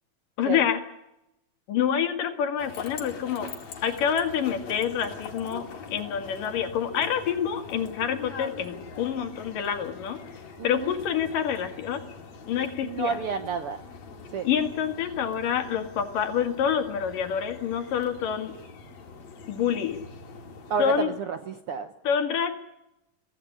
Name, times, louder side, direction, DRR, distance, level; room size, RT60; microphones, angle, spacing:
voice 1, 0.4-0.8 1.7-3.5 3.8-10.2 10.6-12.0 12.5-13.2 14.4-18.5 19.5-20.0 20.8-21.1 22.1-22.6, left 8 dB, 75° left, 7 dB, 3.6 m, -27 dB
sound 1, 2.6-21.0, left 5 dB, 55° left, 3.7 m, -43 dB
voice 2, 10.6-11.0 12.8-13.8 14.3-14.5 20.7-21.9, right 6 dB, 70° right, 9 dB, 1.4 m, -30 dB
23.5 x 15.0 x 10.0 m, 0.87 s
omnidirectional pair, 3.8 m